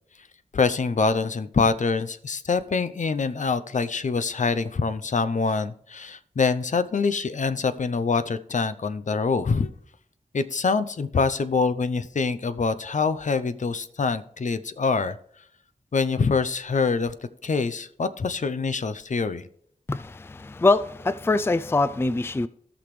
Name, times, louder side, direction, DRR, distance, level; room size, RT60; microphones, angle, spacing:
voice 1, 0.5-9.7 10.3-15.2 15.9-17.1 17.4-19.5, left 4 dB, 60° left, 0.6 m, -25 dB
voice 2, 19.9-22.5, left 3 dB, 15° left, 0.3 m, -23 dB
16.5 x 6.0 x 3.2 m
wide cardioid pair, 90°, 14 cm